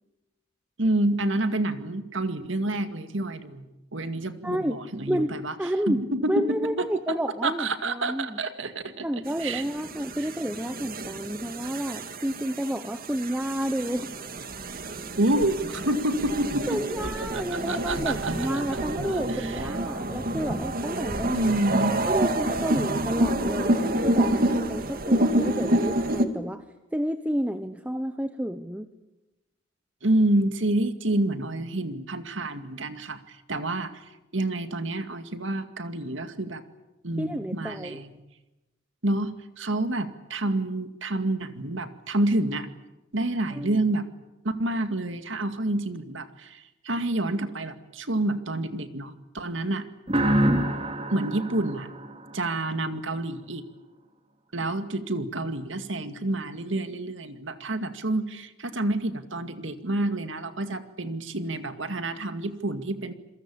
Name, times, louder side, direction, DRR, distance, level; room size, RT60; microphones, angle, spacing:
voice 1, 0.8-5.5 5.9-6.4 6.8-7.2 7.4-9.1 9.4-9.6 15.2-16.8 17.3-18.6 19.0-19.6 21.3-22.0 30.0-34.1 34.3-36.6 37.0-38.2 39.0-42.7 43.1-44.1 44.4-49.9 51.1-51.9 52.3-53.6 54.5-63.1, right 1 dB, 70° right, 9 dB, 2.2 m, -28 dB
voice 2, 4.4-4.8 5.1-6.0 6.3-8.4 9.0-14.1 16.7-21.5 22.1-26.6 26.9-28.9 37.2-38.0 43.5-43.9, equal, 5° right, 9 dB, 1.0 m, -30 dB
sound 1, 9.3-26.2, right 1 dB, 50° right, 2.0 m, -28 dB
sound 2, 50.1-52.8, right 1 dB, 30° right, 3.0 m, -26 dB
28.0 x 22.5 x 8.7 m, 1.0 s
head